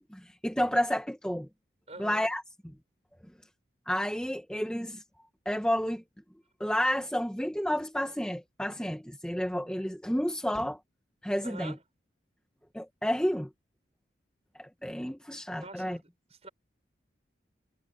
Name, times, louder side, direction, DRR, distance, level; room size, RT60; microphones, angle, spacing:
voice 1, 0.0-1.5 2.0-2.4 3.9-5.0 5.4-6.0 6.6-10.8 11.2-11.7 12.7-13.5 14.6-16.0, equal, 5° left, 1.2 m, -30 dB
voice 2, 1.9-2.3 11.4-11.8 15.6-16.5, right 2 dB, 35° right, 6.0 m, -46 dB
head